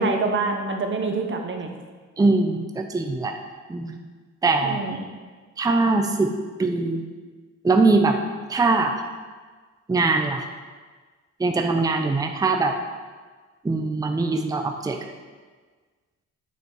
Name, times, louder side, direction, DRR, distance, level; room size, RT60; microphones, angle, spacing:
voice 1, 0.0-1.7 4.6-5.0, right 4 dB, 40° right, 4 dB, 1.1 m, -26 dB
voice 2, 2.2-3.4 3.7-4.0 4.4-4.8 5.6-6.3 6.6-7.1 7.6-8.2 8.5-9.0 9.9-10.4 11.4-12.7 13.6-15.0, right 3 dB, 10° right, 4 dB, 0.6 m, -22 dB
8.1 x 4.3 x 4.7 m, 1.4 s
cardioid pair, 90°, 30 cm